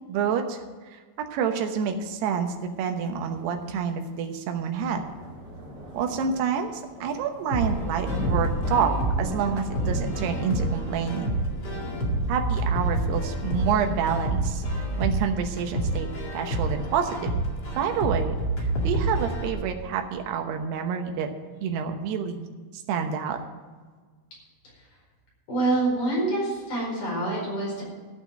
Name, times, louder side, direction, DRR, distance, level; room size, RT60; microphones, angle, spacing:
voice 1, 0.1-0.6 0.9-5.0 5.9-11.4 12.3-14.6 15.0-17.1 17.8-18.4 18.6-21.3 21.6-22.5 22.9-23.4, right 7 dB, 80° right, 5 dB, 3.1 m, -28 dB
sound 1, 4.7-13.4, equal, 30° right, 2.9 m, -37 dB
sound 2, 7.5-19.5, right 2 dB, 35° left, 1.9 m, -28 dB
voice 2, 25.5-27.8, right 2 dB, 50° left, -5 dB, 6.3 m, -26 dB
13.5 x 5.8 x 9.0 m, 1.4 s
omnidirectional pair, 4.7 m